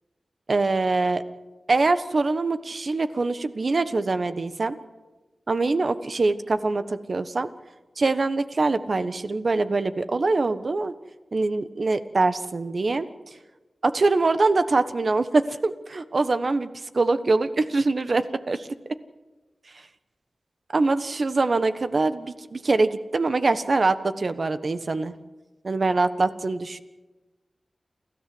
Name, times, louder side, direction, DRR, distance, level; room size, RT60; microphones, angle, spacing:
voice 1, 0.5-1.2 1.7-4.8 5.5-7.5 8.0-10.9 11.3-13.1 13.8-16.7 16.9-18.7 20.7-25.1 25.6-26.8, right 3 dB, 55° right, 11 dB, 1.3 m, -23 dB
29.0 x 14.0 x 7.9 m, 1.2 s
wide cardioid pair, 70°, 0 cm